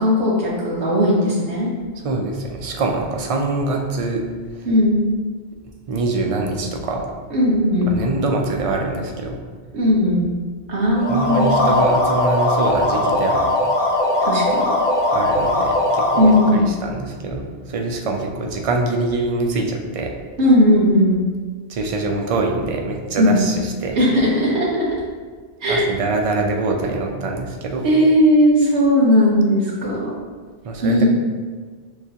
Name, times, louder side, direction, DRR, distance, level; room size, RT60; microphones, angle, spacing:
voice 1, 0.0-1.7 4.6-5.0 7.3-8.0 9.7-10.3 10.7-11.5 14.2-14.7 16.2-16.6 20.4-21.2 23.2-23.4 23.9-24.9 25.6-25.9 27.8-30.2 30.8-31.0, equal, 90° right, -6 dB, 1.5 m, -17 dB
voice 2, 2.0-4.2 4.6-4.7 5.9-7.0 7.9-9.4 11.1-13.5 15.1-20.1 21.7-24.0 25.7-27.8 30.6-31.0, right 2 dB, 50° right, 1 dB, 0.4 m, -24 dB
sound 1, 10.9-16.6, left 1 dB, 35° left, 0.7 m, -19 dB
6.5 x 2.4 x 2.8 m, 1.5 s
omnidirectional pair, 1.1 m